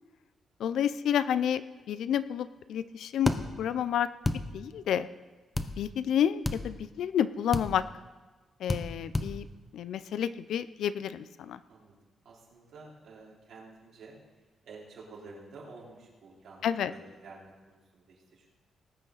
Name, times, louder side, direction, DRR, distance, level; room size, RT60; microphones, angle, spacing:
voice 1, 0.6-1.6 1.9-3.3 3.6-4.1 4.5-5.1 5.8-7.8 8.6-9.5 9.7-11.6 16.6-16.9, left 9 dB, 85° left, 15 dB, 0.5 m, -29 dB
sound 1, 3.3-3.4 4.2-4.4 5.6-5.7 6.4-6.6 7.5-7.7 8.7-8.8 9.1-9.3, left 2 dB, 20° left, 0.8 m, -28 dB
voice 2, 12.2-14.2 14.6-18.5, right 3 dB, 75° right, -4 dB, 4.2 m, -50 dB
19.5 x 9.0 x 4.0 m, 1.3 s
cardioid pair, 110°, 0 cm